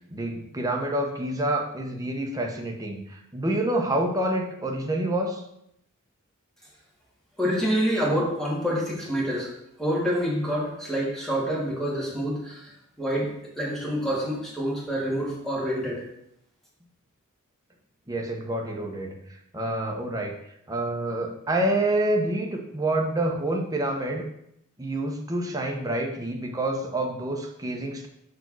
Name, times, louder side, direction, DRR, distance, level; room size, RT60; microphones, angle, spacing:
voice 1, 0.1-5.4 18.1-19.2 19.5-20.3 20.7-24.3 24.8-28.1, right 1 dB, 15° right, 1 dB, 1.0 m, -27 dB
voice 2, 7.4-9.5 9.8-16.0, equal, ahead, -5 dB, 2.3 m, -27 dB
5.4 x 4.8 x 6.1 m, 0.76 s
head